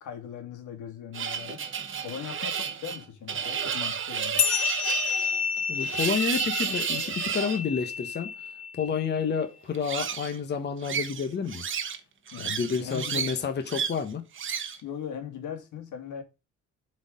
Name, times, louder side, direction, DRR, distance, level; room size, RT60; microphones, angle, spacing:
voice 1, 0.0-1.6 2.0-4.5 12.3-13.3 14.8-16.2, left 8 dB, 85° left, 2.1 m, -39 dB
sound 1, 1.1-7.6 9.7-10.4 10.8-12.0 12.3-13.4 13.7-14.0 14.3-14.8, right 7 dB, 40° right, 1.0 m, -31 dB
sound 2, 4.4-9.2, left 6 dB, 55° left, 1.3 m, -30 dB
voice 2, 5.7-8.4 8.7-11.6 12.4-14.2, left 6 dB, 35° left, 1.0 m, -30 dB
7.8 x 4.4 x 5.2 m
cardioid pair, 145°, 30 cm